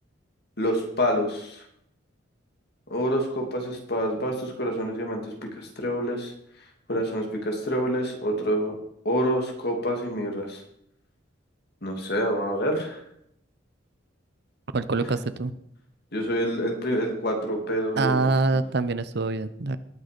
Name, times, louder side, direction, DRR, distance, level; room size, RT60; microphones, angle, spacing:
voice 1, 0.6-1.6 2.9-6.3 6.9-8.8 9.0-10.6 11.8-13.0 16.1-18.3, equal, 55° left, 2 dB, 2.7 m, -27 dB
voice 2, 14.7-15.5 18.0-19.8, right 3 dB, 55° right, 13 dB, 0.7 m, -25 dB
19.0 x 6.5 x 5.2 m, 0.73 s
head